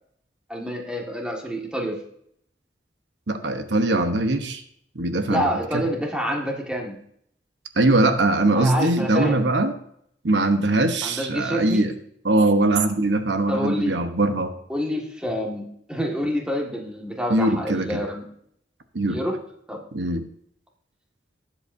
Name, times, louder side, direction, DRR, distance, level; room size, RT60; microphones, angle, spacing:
voice 1, 0.5-2.0 5.3-7.0 8.6-9.5 11.0-11.9 13.5-14.0 14.7-18.2 19.1-19.4 19.7-19.8, equal, 5° right, 0 dB, 1.7 m, -27 dB
voice 2, 3.3-4.6 4.9-5.5 5.7-5.8 7.8-9.7 10.2-11.9 12.2-14.5 17.3-18.0 18.9-19.2 19.9-20.2, right 2 dB, 85° right, 7 dB, 1.0 m, -21 dB
18.5 x 7.9 x 2.6 m, 0.68 s
head